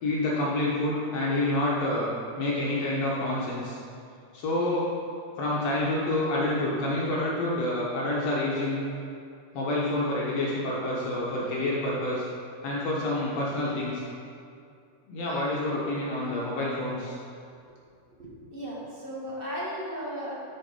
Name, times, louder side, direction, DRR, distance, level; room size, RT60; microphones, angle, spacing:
voice 1, 0.0-3.8 4.3-4.9 5.4-8.8 9.5-12.3 12.6-14.0 15.1-17.2, left 1 dB, 65° left, -6 dB, 2.2 m, -28 dB
voice 2, 18.2-20.3, equal, 20° right, -7 dB, 1.7 m, -35 dB
9.5 x 6.4 x 4.9 m, 2.4 s
omnidirectional pair, 3.3 m